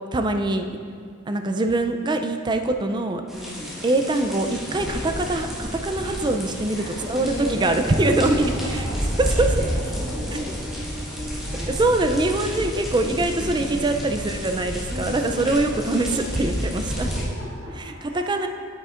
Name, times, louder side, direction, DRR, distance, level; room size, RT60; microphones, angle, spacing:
voice 1, 0.1-0.7 1.3-3.2 3.8-8.8 9.3-9.5 11.7-17.1 17.8-18.5, right 2 dB, 20° right, 6 dB, 0.4 m, -23 dB
sound 1, 3.3-17.2, equal, ahead, 1.4 m, -30 dB
voice 2, 3.3-3.9 6.1-6.4 6.7-9.1 9.4-9.5 9.7-11.8 13.0-14.1 14.9-16.4 16.9-18.5, equal, 60° right, -7 dB, 2.0 m, -36 dB
9.2 x 9.0 x 2.5 m, 2.2 s
head